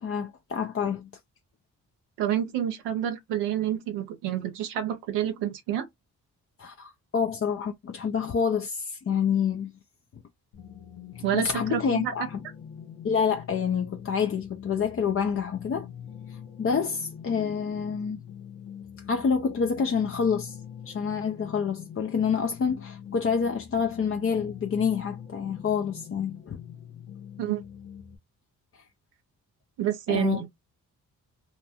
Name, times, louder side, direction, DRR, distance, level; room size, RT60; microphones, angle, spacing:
voice 1, 0.0-1.1 6.6-9.7 11.2-12.4 13.0-15.9 16.3-18.2 19.1-20.6 20.9-26.6 28.7-28.8 30.1-30.5, left 6 dB, 35° left, 0.5 m, -27 dB
voice 2, 2.2-5.8 11.2-12.1 27.4-27.6 29.8-30.5, right 11 dB, 80° right, 0.6 m, -28 dB
sound 1, 10.5-28.2, left 8 dB, 75° left, 0.8 m, -44 dB
2.7 x 2.2 x 2.8 m
hypercardioid pair, 40°, 41 cm